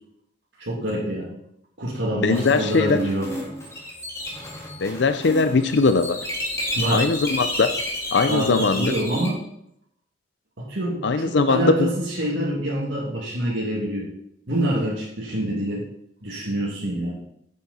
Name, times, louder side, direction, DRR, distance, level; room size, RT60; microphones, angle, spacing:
voice 1, 0.6-1.4 1.8-3.3 6.7-7.1 8.3-9.4 10.6-14.1 14.5-15.9 16.2-17.2, right 1 dB, 75° right, -5 dB, 2.4 m, -26 dB
voice 2, 2.2-3.0 4.8-6.2 6.9-7.7 8.1-8.9 11.0-11.9, left 4 dB, 65° left, 10 dB, 0.5 m, -20 dB
sound 1, 2.3-9.3, left 1 dB, 15° left, 2.3 m, -31 dB
10.5 x 8.0 x 4.2 m, 0.73 s
head